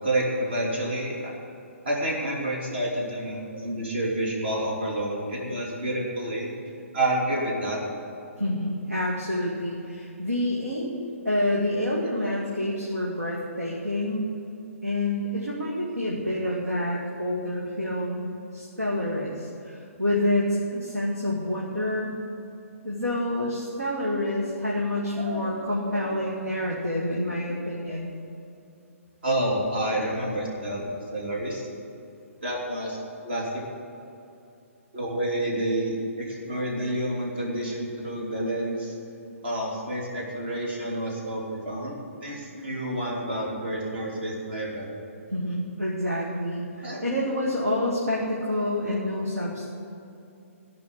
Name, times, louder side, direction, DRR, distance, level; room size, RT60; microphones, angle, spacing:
voice 1, 0.0-1.3 1.8-6.5 6.9-7.8 25.2-26.3 27.9-28.0 29.2-30.8 31.1-31.6 32.4-33.0 33.2-33.6 34.9-39.0 39.4-44.9 46.8-47.1, right 1 dB, 50° right, -3 dB, 3.0 m, -29 dB
voice 2, 8.4-14.4 14.8-22.2 22.8-28.1 45.3-49.7, left 1 dB, 85° right, -4 dB, 2.1 m, -28 dB
15.0 x 5.6 x 9.9 m, 2.7 s
figure-of-eight pair, 125°, 8 cm